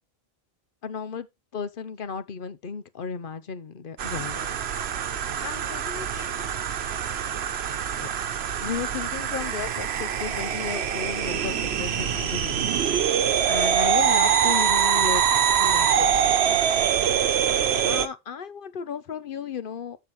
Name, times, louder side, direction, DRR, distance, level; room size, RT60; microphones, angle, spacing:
voice 1, 0.8-1.3 1.5-4.5 5.4-6.4 8.0-8.1 8.6-12.8 13.1-15.2 15.6-16.6 17.8-20.0, left 6 dB, 60° left, 1.0 m, -34 dB
sound 1, 4.0-18.1, right 8 dB, 85° right, 1.0 m, -24 dB
14.5 x 4.9 x 3.1 m
omnidirectional pair, 1.0 m